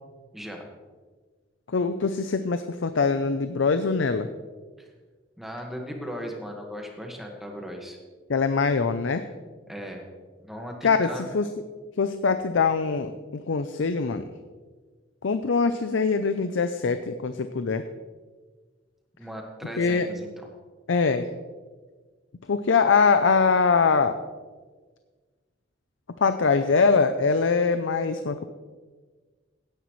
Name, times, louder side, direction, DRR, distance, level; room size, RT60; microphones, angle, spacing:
voice 1, 0.3-0.7 4.8-4.9 5.4-8.0 9.7-10.1 10.4-11.3 19.2-20.5, equal, ahead, 1 dB, 1.6 m, -37 dB
voice 2, 1.7-4.3 8.3-9.3 10.8-11.5 12.0-14.2 15.2-17.8 19.8-20.1 20.9-21.3 22.5-24.2 26.2-28.4, left 5 dB, 80° left, 10 dB, 0.5 m, -23 dB
16.5 x 10.0 x 3.2 m, 1.4 s
head